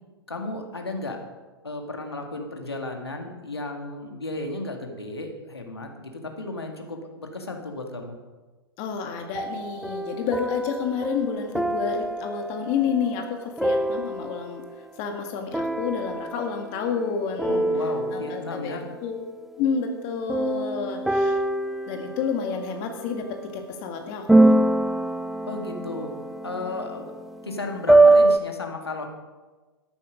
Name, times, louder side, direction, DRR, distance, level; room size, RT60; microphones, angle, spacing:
voice 1, 0.3-1.2 1.6-8.1 17.5-18.8 25.5-26.1 26.4-27.1 27.4-29.1, left 2 dB, 80° left, 3 dB, 2.0 m, -34 dB
voice 2, 8.8-14.6 15.0-17.7 18.1-19.2 19.6-21.4 21.9-24.5, left 6 dB, 40° left, 4 dB, 1.9 m, -29 dB
sound 1, 9.3-14.8 15.5-17.1 17.4-18.7 20.3-23.4 24.3-28.4, right 2 dB, ahead, 0.5 m, -24 dB
13.0 x 11.0 x 5.1 m, 1.2 s
figure-of-eight pair, 105°, 13 cm